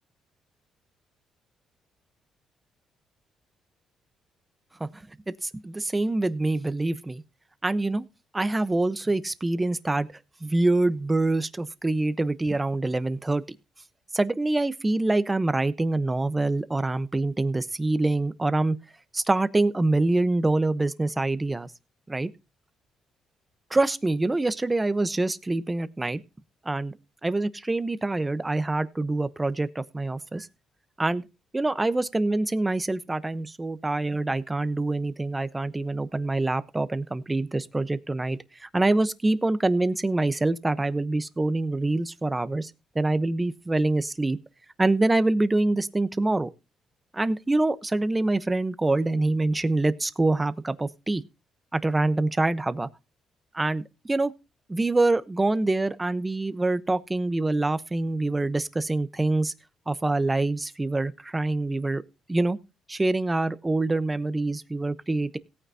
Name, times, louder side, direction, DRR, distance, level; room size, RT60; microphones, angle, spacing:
voice 1, 4.8-7.2 7.6-8.0 8.3-10.1 10.4-13.4 14.1-18.8 19.1-21.7 22.1-22.3 23.7-26.2 26.6-27.0 27.2-30.5 31.0-31.3 31.5-44.4 44.8-46.5 47.1-51.2 51.7-52.9 53.5-54.3 54.7-59.5 59.9-62.0 62.3-62.6 62.9-65.4, right 2 dB, 15° right, 13 dB, 0.9 m, -25 dB
17.5 x 9.1 x 2.8 m, 0.27 s
cardioid pair, 90°, 0 cm